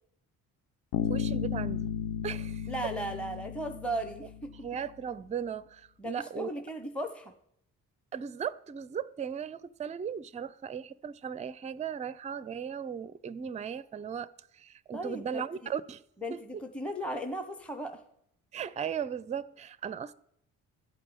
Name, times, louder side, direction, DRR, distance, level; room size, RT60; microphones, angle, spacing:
Bass guitar, 0.9-4.7, left 9 dB, 70° left, 0.6 m, -34 dB
voice 1, 1.1-1.9 2.2-2.7 4.6-6.5 8.1-16.0 16.3-16.4 18.5-20.1, right 7 dB, 20° right, 0.4 m, -37 dB
voice 2, 2.7-4.5 6.0-7.3 14.9-15.7 16.2-18.0, right 1 dB, 5° left, 0.8 m, -36 dB
12.5 x 5.4 x 7.1 m
hypercardioid pair, 45°, 41 cm